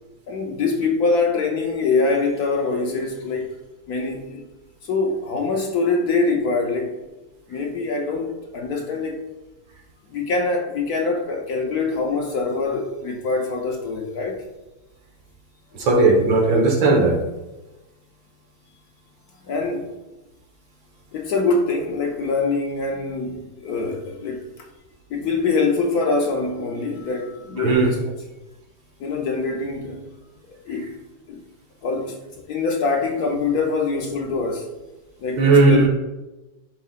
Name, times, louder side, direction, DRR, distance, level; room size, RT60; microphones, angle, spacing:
voice 1, 0.3-3.5 3.9-4.4 4.8-6.9 7.5-9.2 10.1-14.4 15.7-15.9 19.4-20.0 21.1-24.5 25.1-28.1 29.0-30.0 30.7-30.9 31.3-31.4 31.8-34.7 35.2-35.9, left 3 dB, 60° left, 1 dB, 1.1 m, -24 dB
voice 2, 15.8-17.2 27.6-27.9 35.4-35.9, right 3 dB, 75° right, 0 dB, 2.0 m, -16 dB
11.0 x 4.8 x 2.4 m, 1.1 s
omnidirectional pair, 2.1 m